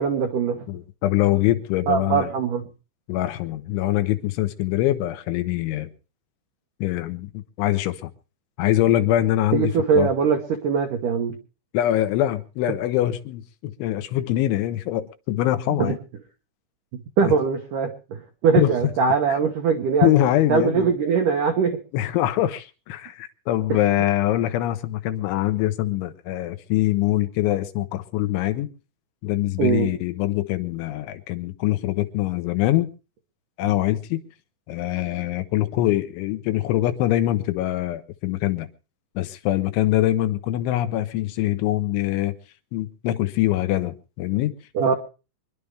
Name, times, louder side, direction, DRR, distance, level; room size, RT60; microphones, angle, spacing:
voice 1, 0.0-0.7 1.9-2.7 9.5-11.4 15.8-16.0 17.2-20.1 20.5-21.8 23.7-23.8 29.6-29.9 44.7-44.9, right 6 dB, 85° right, 1.8 m, -21 dB
voice 2, 0.7-2.3 3.1-5.9 6.8-8.1 8.6-10.1 11.7-16.0 17.2-17.3 18.6-18.7 20.0-20.9 21.9-28.7 29.2-32.9 33.6-34.2 34.7-38.7 39.2-42.3 42.7-44.5, left 14 dB, 80° left, 3.3 m, -23 dB
25.5 x 11.5 x 3.4 m
omnidirectional pair, 5.6 m